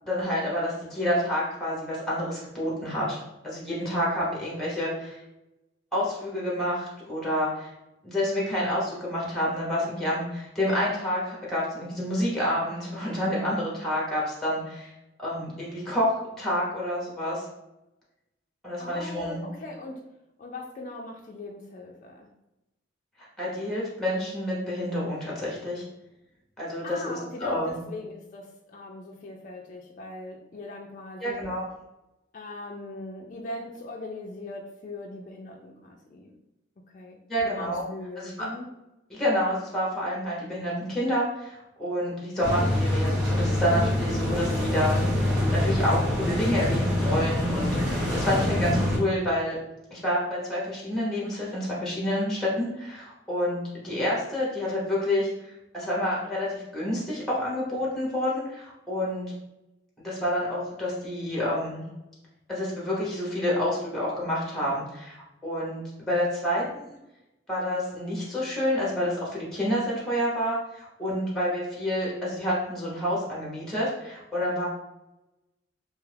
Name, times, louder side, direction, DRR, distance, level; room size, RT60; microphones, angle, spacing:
voice 1, 0.1-5.2 5.9-7.7 8.0-14.9 15.2-17.4 18.6-19.4 23.4-25.8 26.6-27.8 31.2-31.6 37.3-37.8 38.2-38.3 39.1-45.0 45.5-49.6 49.9-55.3 55.7-59.3 60.0-61.8 62.5-66.8 67.5-74.7, left 1 dB, ahead, -5 dB, 0.7 m, -28 dB
voice 2, 18.8-20.0 20.4-22.3 26.8-31.5 32.3-36.3 36.8-37.2 37.4-38.7, left 2 dB, 45° left, 0 dB, 0.3 m, -40 dB
sound 1, 42.4-49.0, left 1 dB, 80° right, 1.3 m, -25 dB
2.7 x 2.3 x 3.3 m, 0.92 s
head